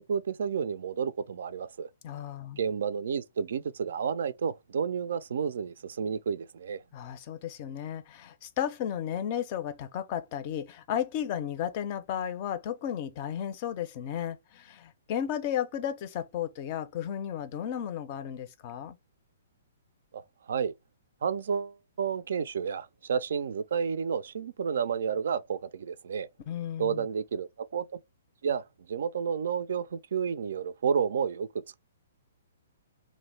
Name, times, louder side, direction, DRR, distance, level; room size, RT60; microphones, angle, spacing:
voice 1, 0.0-1.9 2.6-6.8 20.1-20.2 20.5-20.7 21.2-26.3 26.8-27.9 28.4-28.6 28.9-31.5, right 6 dB, 70° right, 0.3 m, -31 dB
voice 2, 2.0-2.6 6.9-19.0 26.5-27.1, left 9 dB, 40° left, 0.4 m, -34 dB
2.6 x 2.1 x 3.1 m
hypercardioid pair, 135°, 0 cm